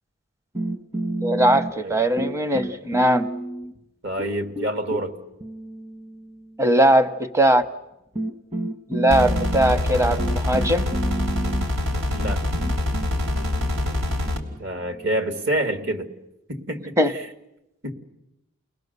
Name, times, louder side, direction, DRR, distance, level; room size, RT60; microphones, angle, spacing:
sound 1, 0.5-1.9 2.2-3.8 4.2-6.6 7.6-7.7 8.1-15.7, right 2 dB, 30° right, 1.5 m, -31 dB
voice 1, 1.2-3.3 6.6-7.6 8.9-10.9 17.0-17.1, right 1 dB, 15° right, 11 dB, 0.8 m, -20 dB
voice 2, 4.0-5.1 12.1-12.5 14.6-16.1 16.5-17.3 17.8-17.9, right 1 dB, 55° right, 6 dB, 2.1 m, -27 dB
sound 2, 9.1-14.4, left 1 dB, 75° right, 3.5 m, -25 dB
30.0 x 20.5 x 6.8 m, 0.90 s
head